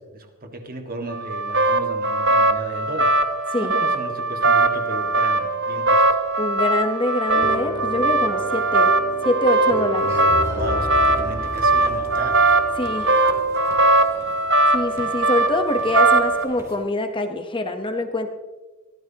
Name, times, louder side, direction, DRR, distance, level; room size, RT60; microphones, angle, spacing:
voice 1, 0.0-3.1 3.6-6.0 10.5-12.4, right 2 dB, 40° right, 4 dB, 1.7 m, -34 dB
sound 1, 1.1-16.4, right 2 dB, 55° right, 1.1 m, -20 dB
voice 2, 6.4-8.9 9.2-10.1 12.8-13.1 14.7-18.3, left 1 dB, 20° left, 6 dB, 0.9 m, -25 dB
sound 2, 7.3-14.4, left 1 dB, 60° left, 2.3 m, -32 dB
sound 3, 10.0-16.8, equal, 15° right, 2.7 m, -43 dB
23.0 x 15.5 x 2.9 m, 1.2 s
head